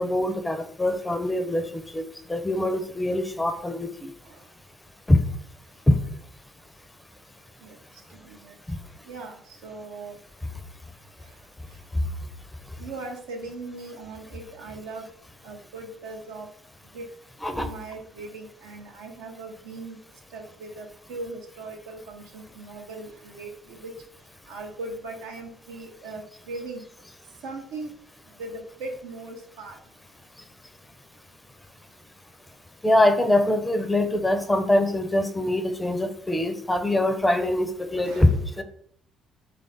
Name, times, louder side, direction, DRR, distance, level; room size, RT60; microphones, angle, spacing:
voice 1, 0.0-4.1 5.1-5.2 5.9-6.0 17.4-17.7 32.8-38.3 38.6-38.7, left 1 dB, 15° left, 8 dB, 0.5 m, -23 dB
voice 2, 8.1-8.5 9.0-10.2 11.2-11.3 12.8-15.1 15.4-16.5 16.9-17.1 17.5-20.0 20.3-23.9 24.5-26.8 27.4-27.9 28.4-29.8 38.0-38.4, right 3 dB, 70° right, 2 dB, 0.6 m, -39 dB
3.3 x 2.4 x 3.9 m, 0.64 s
figure-of-eight pair, 45°, 0 cm